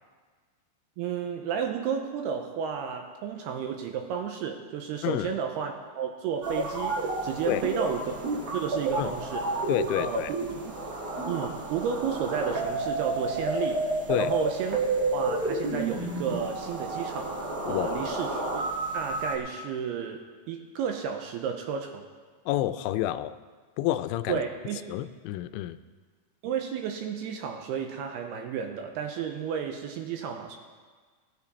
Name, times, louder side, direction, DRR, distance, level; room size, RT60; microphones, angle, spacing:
voice 1, 1.0-9.6 10.0-10.8 11.3-14.8 15.1-18.6 18.9-22.1 24.3-24.8 26.4-30.6, right 7 dB, 80° right, 4 dB, 2.5 m, -32 dB
sound 1, 6.4-19.4, right 2 dB, 50° right, 2.3 m, -30 dB
voice 2, 9.7-10.3 14.1-14.3 17.7-18.1 22.5-23.4 23.8-24.4 24.9-25.8, left 14 dB, 90° left, 13 dB, 2.9 m, -29 dB
18.0 x 10.5 x 4.1 m, 1.5 s
omnidirectional pair, 5.2 m